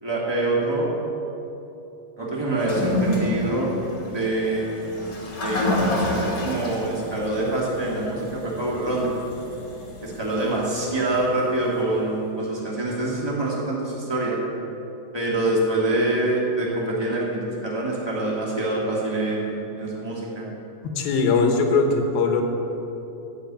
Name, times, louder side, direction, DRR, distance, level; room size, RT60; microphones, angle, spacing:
voice 1, 0.0-0.9 2.2-3.7 4.0-4.7 5.4-9.1 10.0-14.4 15.1-20.4, right 2 dB, 10° right, -5 dB, 2.0 m, -25 dB
Toilet flush, 2.5-11.8, left 1 dB, 35° left, 2.5 m, -30 dB
voice 2, 21.0-22.4, left 4 dB, 75° left, 4 dB, 2.9 m, -20 dB
15.0 x 6.6 x 9.1 m, 3.0 s
omnidirectional pair, 4.5 m